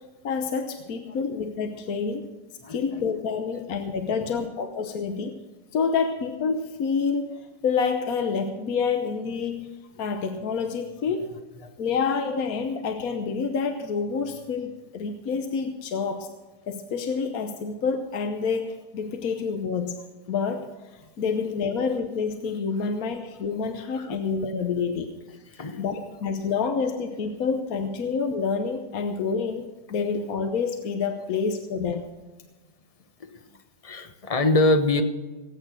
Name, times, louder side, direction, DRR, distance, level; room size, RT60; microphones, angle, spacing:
voice 1, 0.2-2.3 2.7-5.4 5.7-11.3 11.8-16.3 16.7-20.0 20.3-25.2 25.8-32.1, left 5 dB, 70° left, 6 dB, 1.4 m, -28 dB
voice 2, 2.6-3.0 24.0-24.2 25.5-25.8 33.2-33.4 33.8-35.0, left 2 dB, 25° left, 7 dB, 1.0 m, -24 dB
18.5 x 8.9 x 6.2 m, 1.2 s
omnidirectional pair, 1.6 m